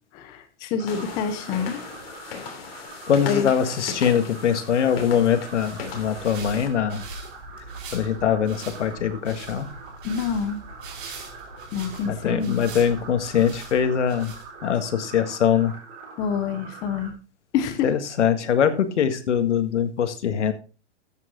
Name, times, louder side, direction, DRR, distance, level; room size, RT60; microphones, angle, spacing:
voice 1, 0.1-1.8 3.3-3.5 10.0-10.7 11.7-12.6 16.2-17.1 17.5-17.9, left 6 dB, 10° left, 8 dB, 0.5 m, -27 dB
sound 1, 0.8-17.1, right 4 dB, 25° right, 3.7 m, -44 dB
sound 2, 0.9-6.7, left 6 dB, 60° left, 3.1 m, -38 dB
voice 2, 3.1-7.0 7.9-9.7 12.0-14.3 14.6-15.7 17.8-20.5, left 8 dB, 90° left, 10 dB, 1.8 m, -22 dB
sound 3, 5.5-14.8, right 3 dB, 50° right, 4.8 m, -42 dB
13.5 x 7.7 x 3.8 m, 0.32 s
hypercardioid pair, 165°, 34 cm